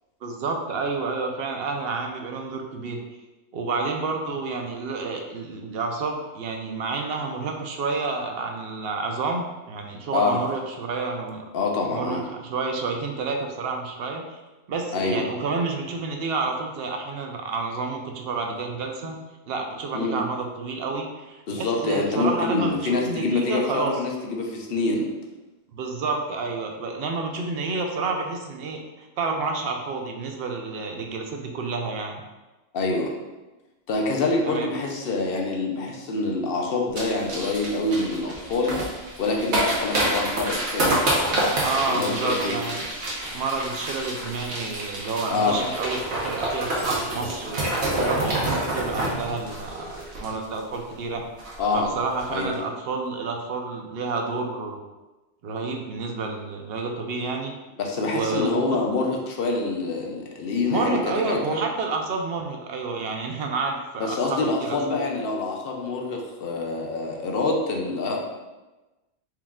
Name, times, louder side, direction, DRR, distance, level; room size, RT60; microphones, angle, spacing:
voice 1, 0.2-3.0 3.5-11.5 11.9-14.2 14.7-19.2 19.5-24.0 25.7-32.2 34.4-34.7 41.6-42.9 43.3-47.7 47.9-49.9 50.2-51.3 51.7-54.8 55.4-57.5 58.1-58.8 60.6-64.8, right 4 dB, 65° right, 3 dB, 0.8 m, -29 dB
voice 2, 11.5-12.2 14.9-15.2 19.9-20.2 21.5-25.1 32.7-33.1 33.9-41.2 41.9-42.6 45.3-45.6 51.6-51.9 52.3-52.5 57.8-61.6 64.0-68.2, left 3 dB, 65° left, 0 dB, 0.8 m, -26 dB
sound 1, 37.0-50.8 51.0-51.1 51.4-51.7 52.1-52.2, right 1 dB, 90° right, 1.2 m, -28 dB
sound 2, 39.4-50.1, equal, 15° right, 0.4 m, -46 dB
4.6 x 2.3 x 3.6 m, 1.1 s
omnidirectional pair, 1.1 m